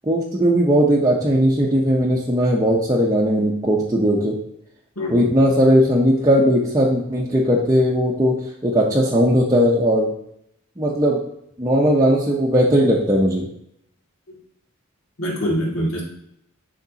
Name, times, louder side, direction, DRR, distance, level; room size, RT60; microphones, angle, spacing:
voice 1, 0.1-4.4 5.1-10.1 10.8-11.2 11.6-13.5, equal, 15° right, -4 dB, 0.7 m, -18 dB
voice 2, 5.0-5.3 15.2-16.0, equal, 70° left, -3 dB, 2.2 m, -24 dB
10.5 x 3.6 x 2.8 m, 0.74 s
head